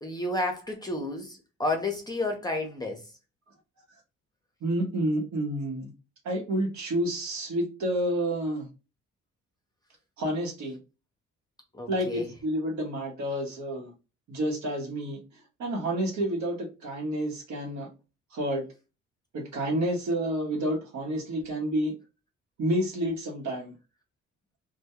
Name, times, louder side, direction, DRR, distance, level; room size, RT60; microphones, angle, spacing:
voice 1, 0.0-3.0 11.7-12.3, left 2 dB, 15° left, 0.6 m, -31 dB
voice 2, 4.6-5.9 6.2-8.7 10.2-10.8 11.9-13.9 14.3-15.2 15.6-17.9 18.3-18.6 19.3-21.9 22.6-23.7, right 1 dB, 65° right, 0.9 m, -29 dB
2.2 x 2.1 x 2.9 m
cardioid pair, 90°, 30 cm